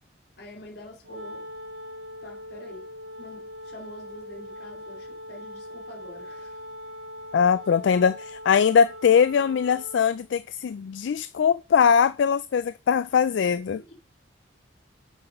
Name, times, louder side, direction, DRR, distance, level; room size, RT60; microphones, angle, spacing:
voice 1, 0.4-1.5 2.2-2.9 3.2-6.6 13.5-13.9, left 1 dB, 60° left, 2.9 m, -46 dB
Wind instrument woodwind instrument, 1.0-10.3, left 1 dB, 90° right, 1.1 m, -41 dB
voice 2, 7.3-13.8, left 7 dB, 75° left, 0.3 m, -21 dB
6.7 x 5.8 x 5.4 m
head